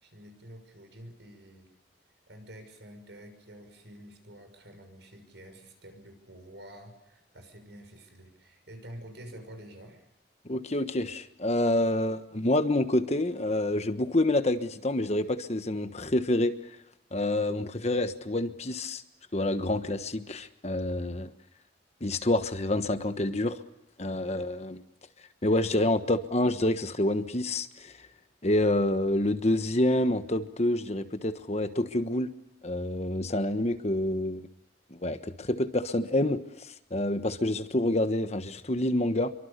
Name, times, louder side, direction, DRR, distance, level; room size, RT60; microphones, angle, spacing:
voice 1, 0.0-1.7 2.3-10.1, equal, 75° right, 7 dB, 6.2 m, -48 dB
voice 2, 10.4-16.5 17.1-19.0 19.3-21.3 22.0-23.6 24.0-24.8 25.4-28.1 28.4-32.3 32.6-34.5 34.9-39.3, left 1 dB, 35° left, 9 dB, 1.3 m, -27 dB
27.5 x 24.0 x 6.8 m, 0.85 s
head